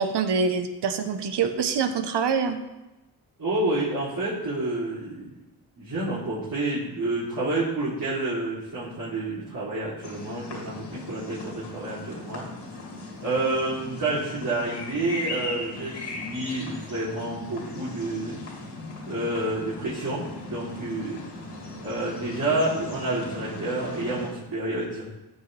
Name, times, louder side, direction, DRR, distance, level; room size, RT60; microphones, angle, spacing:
voice 1, 0.0-2.6, right 5 dB, 80° right, 8 dB, 1.0 m, -25 dB
voice 2, 3.4-5.3 5.8-12.4 13.2-18.4 19.1-21.2 21.8-25.1, right 2 dB, 55° right, -9 dB, 3.3 m, -29 dB
sound 1, 10.0-24.3, left 2 dB, 85° left, 2.5 m, -38 dB
15.0 x 6.4 x 3.4 m, 1.0 s
cardioid pair, 75°, 40 cm